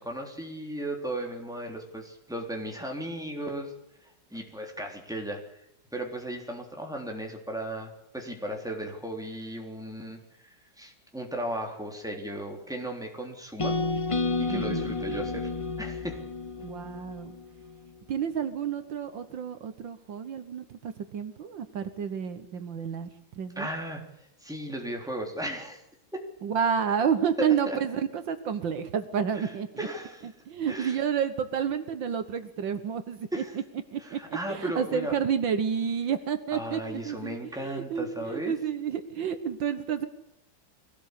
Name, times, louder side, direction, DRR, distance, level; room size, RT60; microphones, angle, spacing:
voice 1, 0.0-3.7 4.0-5.6 5.9-13.8 14.4-15.5 15.8-16.2 23.6-25.8 26.1-26.2 27.4-27.8 29.4-29.5 29.8-30.2 30.7-31.0 33.3-33.5 34.0-35.1 36.5-38.5, right 1 dB, ahead, 1 dB, 3.6 m, -36 dB
sound 1, 13.6-17.7, left 3 dB, 45° left, 0.4 m, -31 dB
voice 2, 14.5-15.3 16.6-17.4 18.1-23.1 23.4-23.7 26.4-29.9 30.2-33.6 33.9-34.2 34.5-40.1, right 7 dB, 70° right, 9 dB, 1.9 m, -30 dB
22.5 x 17.5 x 8.4 m, 0.82 s
omnidirectional pair, 2.1 m